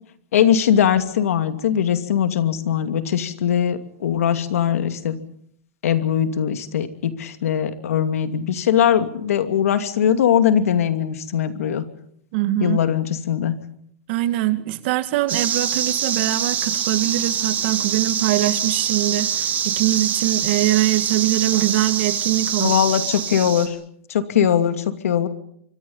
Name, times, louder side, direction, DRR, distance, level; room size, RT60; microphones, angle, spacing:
voice 1, 0.3-5.2 5.8-11.8 12.6-13.5 22.6-23.8 24.1-25.3, left 9 dB, 90° left, 9 dB, 2.6 m, -20 dB
voice 2, 12.3-12.8 14.1-22.7, right 15 dB, 50° right, 10 dB, 2.1 m, -22 dB
sound 1, 15.3-23.7, right 8 dB, 20° right, 3.1 m, -24 dB
25.5 x 24.5 x 5.6 m, 0.68 s
supercardioid pair, 155°, 8 cm